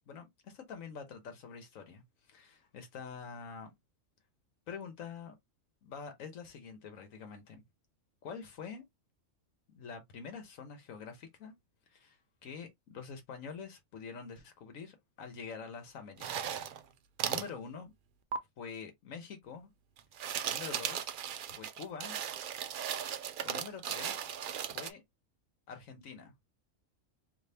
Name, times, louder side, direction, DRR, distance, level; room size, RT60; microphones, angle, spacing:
voice 1, 0.1-3.7 4.7-5.4 5.8-7.6 8.2-8.8 9.8-11.5 11.9-16.5 17.2-17.9 18.6-19.7 20.5-21.1 21.5-22.2 23.4-24.3 24.7-25.0 25.7-26.3, left 6 dB, 85° left, 1.3 m, -46 dB
sound 1, 16.2-16.8 17.2-17.5 18.3-18.4 20.0-24.9, right 8 dB, 70° right, 0.5 m, -37 dB
3.4 x 2.9 x 2.8 m
omnidirectional pair, 1.4 m